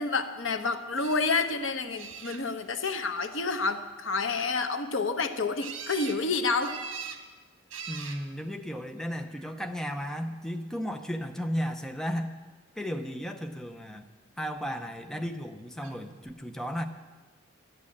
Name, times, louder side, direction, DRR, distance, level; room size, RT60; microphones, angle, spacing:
voice 1, 0.0-6.8, left 4 dB, 70° left, 8 dB, 1.0 m, -29 dB
sound 1, 1.0-1.4 2.0-2.7 5.6-6.2 6.6-7.2 7.7-8.2 9.1-9.6 15.8-15.9 16.3-16.4, right 6 dB, 75° right, 1.3 m, -41 dB
voice 2, 7.9-12.3 12.8-14.1 14.4-16.9, equal, 5° left, 5 dB, 0.6 m, -34 dB
12.0 x 8.7 x 8.6 m, 1.3 s
head